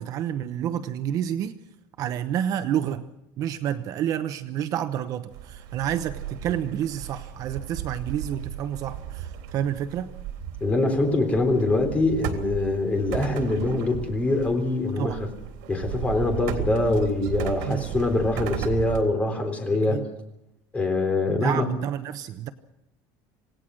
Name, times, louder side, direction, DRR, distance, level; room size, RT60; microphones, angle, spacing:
voice 1, 0.0-1.6 2.0-3.1 3.4-10.1 15.0-15.2 17.7-18.1 19.9-20.1 21.3-22.5, right 10 dB, 40° right, 0.9 m, -29 dB
sound 1, 5.3-19.0, right 9 dB, 85° right, 3.5 m, -35 dB
voice 2, 10.6-15.3 15.7-20.0 20.7-21.6, left 2 dB, 15° left, 3.7 m, -24 dB
27.0 x 18.5 x 6.4 m
cardioid pair, 175°, 10 cm